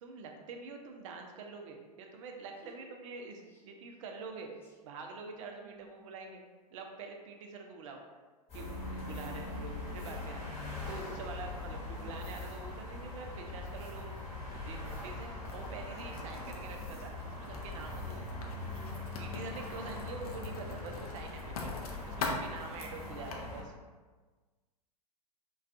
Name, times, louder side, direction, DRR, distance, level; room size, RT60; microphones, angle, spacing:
voice 1, 0.0-4.5 4.8-6.4 6.7-8.0 8.5-10.6 10.9-18.3 19.2-23.7, right 4 dB, 50° right, 3 dB, 0.4 m, -46 dB
voice 2, 5.4-6.1 9.1-9.2 11.6-12.1 16.4-16.8 18.3-18.8 22.6-22.7, right 2 dB, 10° left, -4 dB, 0.4 m, -56 dB
sound 1, 8.5-23.6, left 2 dB, 30° left, 1.0 m, -42 dB
sound 2, 8.5-12.7, left 3 dB, 15° right, 0.9 m, -49 dB
Writing, 15.4-23.3, left 3 dB, 60° left, 0.5 m, -44 dB
2.3 x 2.2 x 2.5 m, 1.3 s
figure-of-eight pair, 100°, 21 cm